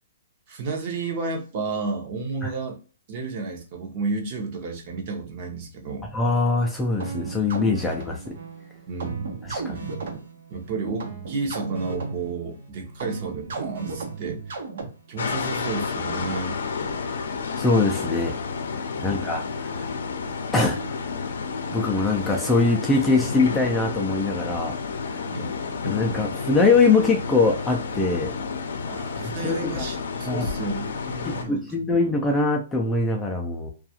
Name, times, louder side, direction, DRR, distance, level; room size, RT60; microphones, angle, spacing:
voice 1, 0.5-2.8 3.1-6.1 8.9-9.3 9.8-9.9 10.5-14.6 15.1-16.6 18.9-19.3 25.3-25.6 28.8-31.6 31.9-32.0, right 4 dB, 40° right, 2 dB, 0.8 m, -32 dB
voice 2, 6.1-8.3 9.4-9.8 17.6-18.3 18.7-19.8 20.5-21.0 21.7-24.8 25.8-28.4 29.2-29.9 30.3-30.5 31.2-33.7, left 3 dB, 5° left, 0 dB, 0.3 m, -23 dB
sound 1, 7.0-15.2, right 3 dB, 75° right, 0.9 m, -35 dB
sound 2, 15.2-31.5, left 5 dB, 75° left, 0.5 m, -31 dB
2.4 x 2.3 x 2.7 m, 0.36 s
hypercardioid pair, 155°, 0 cm